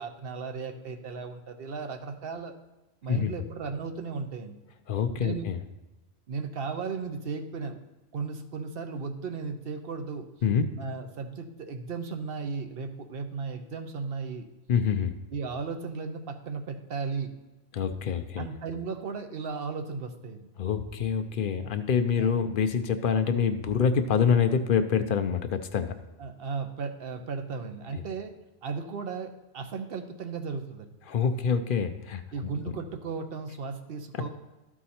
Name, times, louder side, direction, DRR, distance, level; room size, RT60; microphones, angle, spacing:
voice 1, 0.0-2.5 3.0-4.6 5.2-5.5 6.3-7.8 8.1-10.3 10.7-14.5 15.3-17.3 18.4-20.5 22.2-22.3 26.2-28.3 28.6-30.9 32.3-34.3, right 5 dB, 55° right, 7 dB, 0.9 m, -35 dB
voice 2, 4.9-5.6 10.4-10.7 14.7-15.1 17.7-18.5 20.6-25.9 27.9-28.0 31.1-32.2, left 6 dB, 55° left, 8 dB, 0.6 m, -26 dB
12.5 x 4.7 x 4.3 m, 1.1 s
omnidirectional pair, 1.2 m